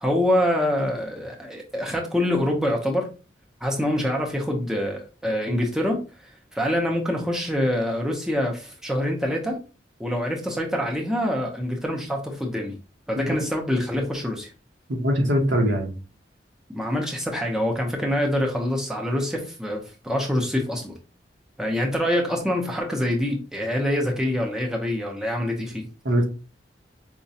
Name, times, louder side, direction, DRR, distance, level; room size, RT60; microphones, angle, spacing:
voice 1, 0.0-3.1 3.6-6.0 6.5-9.6 10.0-12.7 13.1-14.5 16.7-20.9 21.6-25.9, left 1 dB, 5° right, 0.5 m, -25 dB
voice 2, 14.9-15.9 26.0-26.2, equal, 75° right, 1.0 m, -22 dB
4.7 x 2.2 x 2.7 m
head